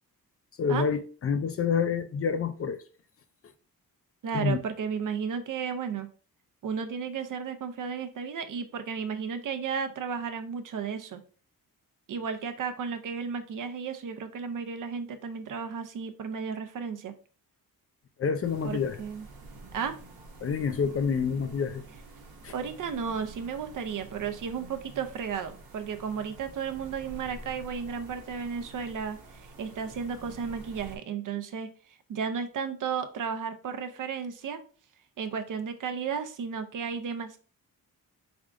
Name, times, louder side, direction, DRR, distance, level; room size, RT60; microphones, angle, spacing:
voice 1, 0.6-2.8 4.3-4.6 18.2-19.0 20.4-21.8 22.4-22.5, left 6 dB, 40° left, 0.4 m, -28 dB
voice 2, 4.2-6.1 6.6-11.2 12.1-17.1 18.6-19.2 19.7-20.0 22.5-34.6 35.2-37.4, right 6 dB, 60° right, 0.6 m, -34 dB
sound 1, 18.4-31.0, right 2 dB, 80° right, 1.0 m, -48 dB
3.5 x 3.5 x 2.4 m
cardioid pair, 85°, 36 cm